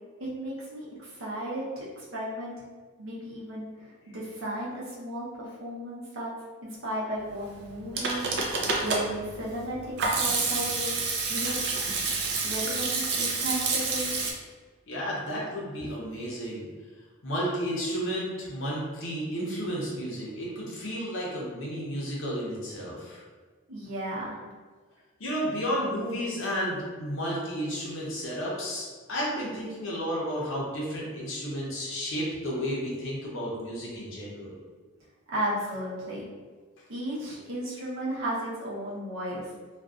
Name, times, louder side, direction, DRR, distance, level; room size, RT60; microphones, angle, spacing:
voice 1, 0.2-2.5 3.0-6.3 6.6-8.4 8.8-10.9 11.3-11.9 12.4-14.1 23.7-24.4 35.3-36.2 36.9-39.4, right 1 dB, 75° right, -6 dB, 0.7 m, -34 dB
Hands / Sink (filling or washing), 7.6-14.3, right 3 dB, 55° right, 0.4 m, -28 dB
voice 2, 14.9-16.7 17.2-23.2 25.2-34.6, equal, 75° left, -5 dB, 0.7 m, -32 dB
2.5 x 2.2 x 2.3 m, 1.4 s
head